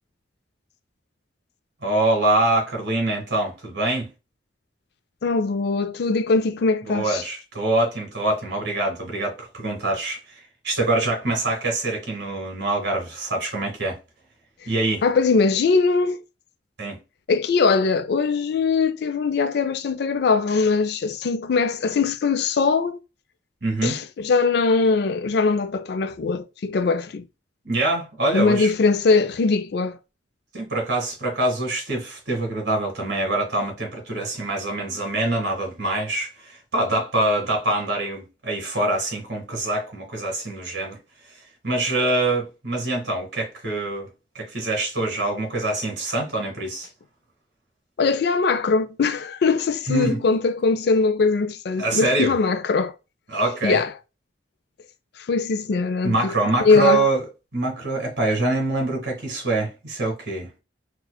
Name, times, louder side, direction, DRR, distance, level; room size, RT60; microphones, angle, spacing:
voice 1, 1.8-4.1 6.9-14.0 14.7-15.0 16.8-17.0 23.6-24.0 27.6-28.7 30.5-41.0 41.6-44.1 44.4-46.9 49.9-50.2 51.8-52.4 53.3-53.8 56.0-57.2 57.5-60.6, right 2 dB, 60° right, 1.8 m, -24 dB
voice 2, 5.2-7.2 15.0-16.2 17.3-23.0 23.8-27.2 28.3-30.0 48.0-52.9 53.6-53.9 55.3-56.3 56.6-57.0, left 4 dB, 60° left, 0.4 m, -21 dB
5.7 x 2.3 x 2.2 m
head